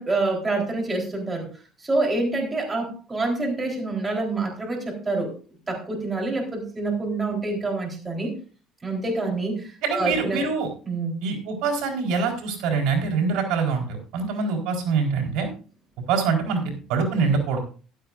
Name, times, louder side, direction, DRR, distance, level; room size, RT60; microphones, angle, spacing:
voice 1, 0.0-1.5 1.8-5.3 5.7-8.3 8.8-10.4 10.9-11.1, right 2 dB, 15° right, 0 dB, 3.8 m, -27 dB
voice 2, 9.8-10.7 11.2-15.5 16.1-17.6, right 5 dB, 80° right, 1 dB, 4.2 m, -24 dB
15.0 x 12.0 x 2.5 m, 0.38 s
cardioid pair, 140°, 0 cm